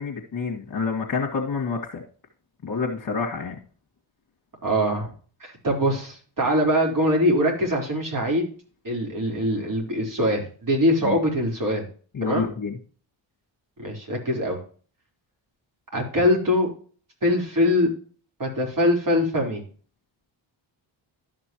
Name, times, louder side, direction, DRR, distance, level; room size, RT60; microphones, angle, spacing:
voice 1, 0.0-2.0 2.6-3.6 11.0-11.2 12.1-12.8, left 5 dB, 45° left, -3 dB, 2.2 m, -28 dB
voice 2, 4.6-5.1 5.4-8.5 8.8-11.9 12.2-12.5 13.8-14.6 15.9-16.7 17.2-17.9 18.4-19.6, equal, 40° right, 0 dB, 4.5 m, -23 dB
12.5 x 6.0 x 3.1 m, 0.40 s
cardioid pair, 75°, 48 cm